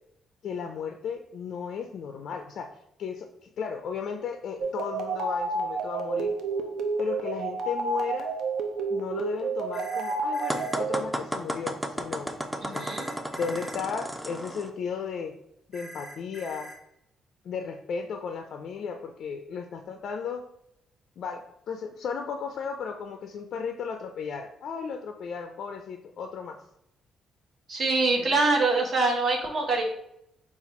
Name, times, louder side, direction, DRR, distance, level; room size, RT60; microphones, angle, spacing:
voice 1, 0.4-2.7 3.0-6.3 7.0-8.3 8.9-12.3 12.7-12.9 13.4-15.4 15.7-16.7 17.4-20.4 21.2-21.4 21.7-26.6 28.2-28.4, left 6 dB, 65° left, 5 dB, 0.4 m, -35 dB
sound 1, 4.6-11.0, right 3 dB, 75° right, 0.5 m, -30 dB
sound 2, 9.7-10.8 12.7-13.8 15.7-16.8, right 1 dB, 25° right, 0.8 m, -44 dB
sound 3, 10.5-14.7, equal, 10° right, 0.4 m, -33 dB
voice 2, 12.6-13.1 27.7-29.8, right 3 dB, 50° right, 1 dB, 1.0 m, -24 dB
4.0 x 2.4 x 4.2 m, 0.78 s
cardioid pair, 90°, 0 cm